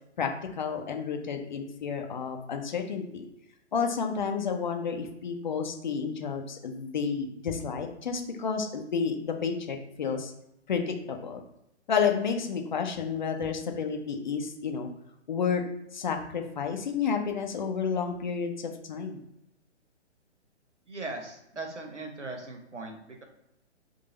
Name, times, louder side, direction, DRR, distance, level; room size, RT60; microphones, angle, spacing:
voice 1, 0.2-3.2 3.7-10.3 10.7-11.4 11.9-14.9 15.3-15.6 15.9-19.2, left 6 dB, 40° left, 4 dB, 0.6 m, -31 dB
voice 2, 20.9-23.2, right 2 dB, 85° right, 3 dB, 1.1 m, -39 dB
3.8 x 2.7 x 3.8 m, 0.82 s
figure-of-eight pair, 130°, 35 cm